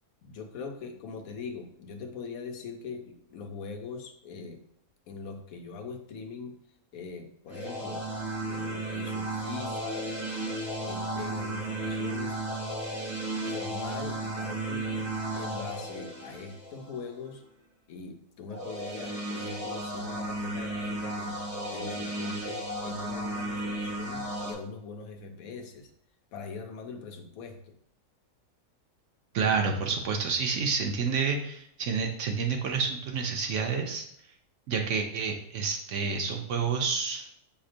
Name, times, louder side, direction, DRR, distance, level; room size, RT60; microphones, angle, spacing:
voice 1, 0.2-4.6 5.1-6.5 6.9-8.1 8.4-10.2 10.8-12.4 13.4-15.1 15.3-17.4 17.9-21.4 21.7-25.9 26.3-27.7, left 4 dB, 75° left, 4 dB, 1.0 m, -41 dB
sound 1, 7.5-17.0 18.5-24.5, right 1 dB, 45° right, 1.1 m, -34 dB
voice 2, 29.3-34.1 34.7-37.3, right 5 dB, 65° right, 2 dB, 0.8 m, -29 dB
6.3 x 2.8 x 2.5 m, 0.70 s
omnidirectional pair, 1.5 m